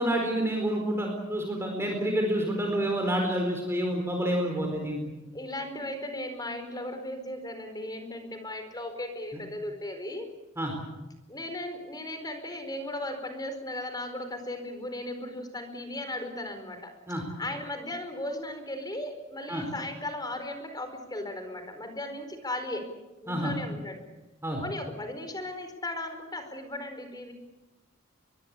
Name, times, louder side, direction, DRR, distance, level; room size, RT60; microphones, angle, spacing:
voice 1, 0.0-5.0 10.6-10.7 17.1-17.2 19.5-19.6 23.3-23.5 24.4-24.6, right 1 dB, 10° right, 1 dB, 4.5 m, -28 dB
voice 2, 5.3-10.3 11.3-16.9 17.4-22.9 23.2-24.0 24.6-27.3, left 1 dB, 20° left, 7 dB, 4.6 m, -36 dB
23.0 x 23.0 x 8.4 m, 1.1 s
head